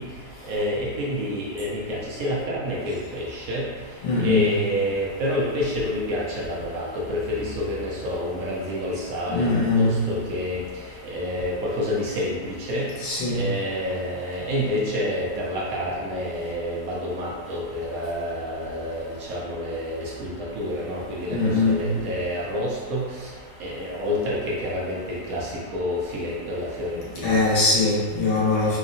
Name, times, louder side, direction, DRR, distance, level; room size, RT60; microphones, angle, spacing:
voice 1, 0.0-23.3 23.6-27.4, left 1 dB, 70° right, -5 dB, 1.0 m, -28 dB
voice 2, 4.0-4.4 9.3-9.9 13.0-13.4 21.3-21.9 27.2-28.8, left 3 dB, 85° left, -7 dB, 1.5 m, -21 dB
3.6 x 2.0 x 2.5 m, 1.5 s
omnidirectional pair, 1.7 m